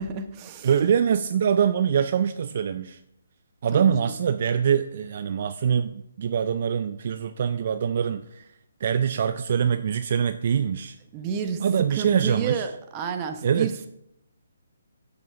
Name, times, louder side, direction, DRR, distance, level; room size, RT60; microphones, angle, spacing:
voice 1, 0.0-0.7 3.7-4.2 11.1-11.6 11.9-13.9, right 6 dB, 25° right, 7 dB, 1.0 m, -31 dB
voice 2, 0.6-3.0 3.6-8.5 8.8-11.0 11.6-12.7 13.4-13.7, right 7 dB, 50° right, 11 dB, 0.4 m, -24 dB
7.4 x 6.0 x 5.8 m, 0.79 s
hypercardioid pair, 150°, 0 cm